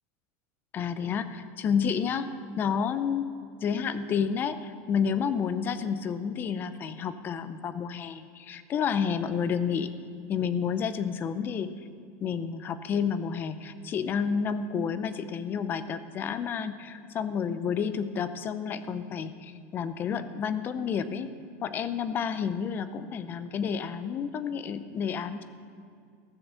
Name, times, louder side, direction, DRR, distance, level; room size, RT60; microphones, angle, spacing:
voice 1, 0.7-2.3 2.6-3.2 3.6-9.9 10.3-11.7 12.2-21.3 21.6-25.4, left 7 dB, 25° left, 12 dB, 0.5 m, -30 dB
14.5 x 7.0 x 6.8 m, 2.3 s
supercardioid pair, 155°, 8 cm